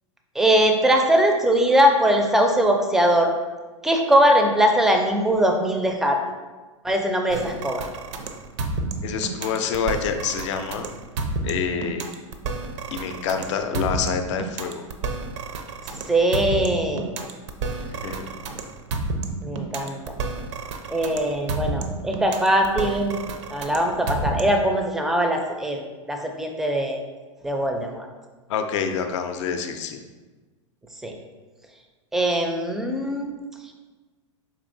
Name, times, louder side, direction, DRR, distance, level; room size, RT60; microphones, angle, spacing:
voice 1, 0.4-3.3 3.8-6.2 6.8-7.8 16.1-17.2 19.4-20.2 20.9-23.2 23.5-25.8 26.1-27.0 27.4-28.1 31.0-31.1 32.1-33.4, equal, ahead, 3 dB, 0.4 m, -21 dB
sound 1, 7.3-24.7, right 3 dB, 65° right, 0.5 m, -30 dB
voice 2, 9.0-10.9 11.4-12.0 12.9-14.8 17.9-18.3 28.5-30.0, left 6 dB, 65° left, 6 dB, 0.4 m, -27 dB
4.4 x 2.8 x 2.6 m, 1.3 s
hypercardioid pair, 105°, 17 cm